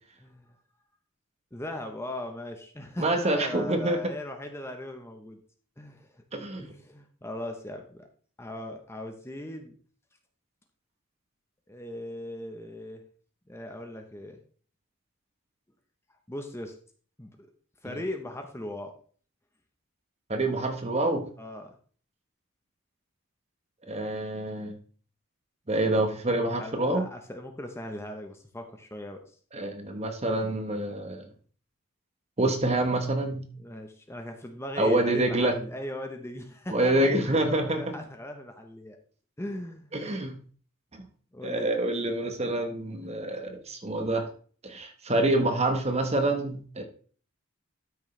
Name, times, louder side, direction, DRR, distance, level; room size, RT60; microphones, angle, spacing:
voice 1, 0.2-0.5 1.5-5.4 5.8-6.2 6.6-8.1 8.4-9.7 11.7-13.0 13.5-14.4 16.3-16.8 17.2-17.5 17.8-19.0 21.4-21.8 26.6-29.4 33.6-39.0 39.4-39.9 41.3-41.7, left 1 dB, 10° left, 5 dB, 0.9 m, -39 dB
voice 2, 3.0-4.0 6.3-6.7 17.8-18.0 20.3-21.3 23.9-24.8 25.7-27.1 29.5-31.3 32.4-33.4 34.8-35.5 36.7-37.9 39.9-40.4 40.9-41.0 41.4-44.3 44.6-46.8, right 1 dB, 30° right, 6 dB, 1.3 m, -27 dB
12.5 x 6.4 x 3.3 m, 0.44 s
head